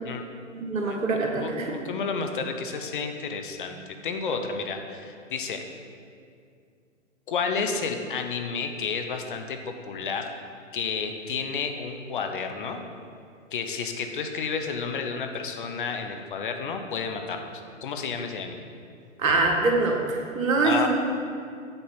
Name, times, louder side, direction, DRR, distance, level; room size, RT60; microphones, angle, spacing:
voice 1, 0.5-1.7 4.3-4.4 19.2-20.9, right 3 dB, 80° right, 0 dB, 1.6 m, -24 dB
voice 2, 1.4-3.8 4.0-5.6 7.3-10.3 10.7-12.8 13.5-17.5 17.8-18.6 20.6-20.9, left 5 dB, 40° left, 5 dB, 0.7 m, -31 dB
8.8 x 4.1 x 5.8 m, 2.3 s
hypercardioid pair, 145°, 40 cm